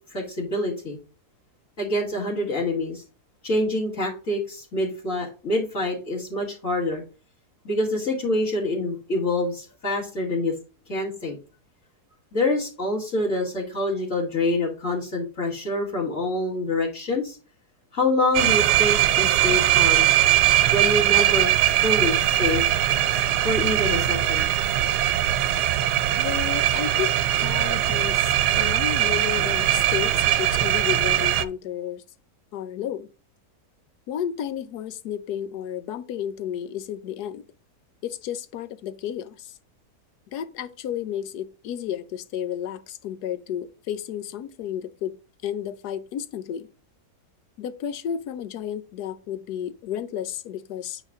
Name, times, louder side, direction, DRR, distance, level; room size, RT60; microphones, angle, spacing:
voice 1, 0.1-1.0 1.8-3.0 3.4-7.0 7.6-10.5 10.9-11.4 12.3-17.4 17.9-20.1 20.7-21.5 21.8-22.6 23.4-24.5, left 2 dB, 50° left, 2.6 m, -26 dB
sound 1, 18.3-31.4, right 12 dB, 85° right, 1.2 m, -21 dB
voice 2, 26.2-27.1 27.4-32.0 32.5-33.1 34.1-37.4 38.0-39.5 40.3-45.2 45.4-46.7 47.6-51.0, left 9 dB, 80° left, 1.2 m, -32 dB
9.0 x 4.1 x 3.6 m
omnidirectional pair, 1.7 m